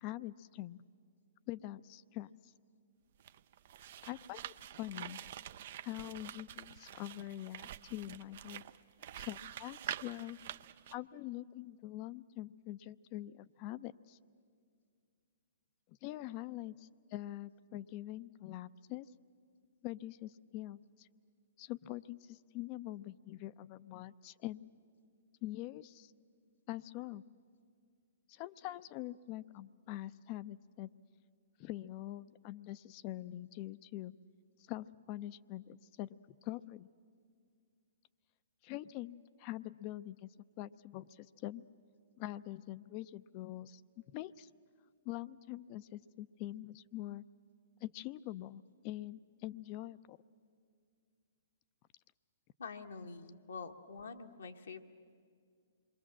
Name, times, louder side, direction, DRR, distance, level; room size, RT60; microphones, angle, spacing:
voice 1, 0.0-0.8 1.5-2.3 4.1-5.2 5.8-8.6 9.1-10.4 10.9-14.2 15.9-19.1 19.8-21.1 21.6-24.6 25.4-26.1 26.7-27.2 28.3-30.9 31.6-34.1 34.7-36.1 36.4-36.9 38.6-40.3 40.6-41.6 42.2-43.8 44.1-44.5 45.0-47.2 47.8-50.2, left 15 dB, 35° left, 16 dB, 0.5 m, -44 dB
sound 1, 3.2-10.9, right 11 dB, 55° right, 0.6 m, -47 dB
voice 2, 52.6-54.8, left 5 dB, 75° left, 3 dB, 1.4 m, -46 dB
27.5 x 22.0 x 7.5 m, 2.2 s
hypercardioid pair, 130°, 0 cm